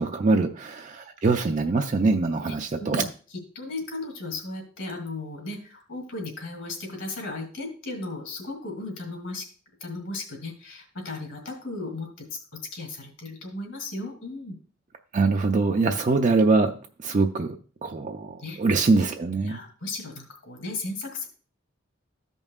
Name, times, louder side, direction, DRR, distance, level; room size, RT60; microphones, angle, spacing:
voice 1, 0.0-3.0 15.1-16.7 17.0-17.5 17.8-19.6, right 3 dB, 35° right, 4 dB, 0.4 m, -23 dB
voice 2, 2.4-9.5 9.8-12.3 12.5-14.6 15.8-16.0 18.4-18.6 19.4-21.3, left 2 dB, 65° left, 2 dB, 2.5 m, -36 dB
14.0 x 5.3 x 2.4 m, 0.40 s
head